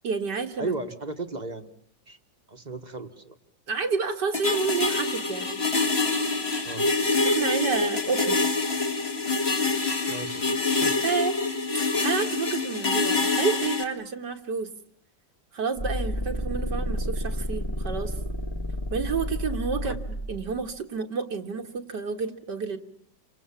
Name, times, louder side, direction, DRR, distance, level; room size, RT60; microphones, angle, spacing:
voice 1, 0.0-0.7 3.7-5.6 7.2-8.4 11.0-11.3 12.0-14.7 15.5-18.1 18.9-20.0 20.3-22.8, right 5 dB, 65° right, 5 dB, 2.4 m, -29 dB
voice 2, 0.6-1.8 2.1-2.2 2.5-3.4 6.6-6.8 10.1-10.9 19.8-19.9, right 3 dB, 25° right, 7 dB, 1.6 m, -35 dB
sound 1, 4.3-13.8, left 3 dB, 35° left, 2.4 m, -26 dB
sound 2, 15.8-20.7, equal, 15° left, 0.9 m, -31 dB
29.5 x 26.0 x 7.2 m, 0.63 s
omnidirectional pair, 2.0 m